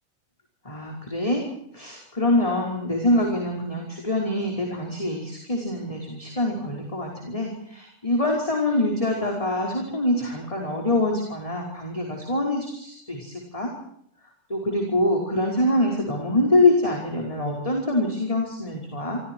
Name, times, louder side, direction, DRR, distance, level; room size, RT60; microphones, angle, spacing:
voice 1, 0.6-1.4 1.7-13.7 14.5-19.2, left 1 dB, 10° left, 1 dB, 5.1 m, -24 dB
29.5 x 27.0 x 4.7 m, 0.69 s
omnidirectional pair, 3.5 m